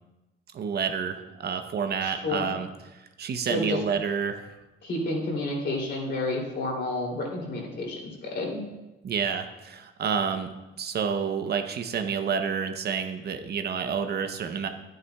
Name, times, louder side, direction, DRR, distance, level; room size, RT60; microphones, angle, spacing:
voice 1, 0.5-4.6 9.0-14.7, right 6 dB, 55° right, 7 dB, 0.8 m, -29 dB
voice 2, 2.0-2.5 3.5-3.8 4.8-8.6, left 2 dB, 60° left, -1 dB, 2.9 m, -30 dB
11.0 x 9.2 x 2.3 m, 1.0 s
cardioid pair, 90°, 20 cm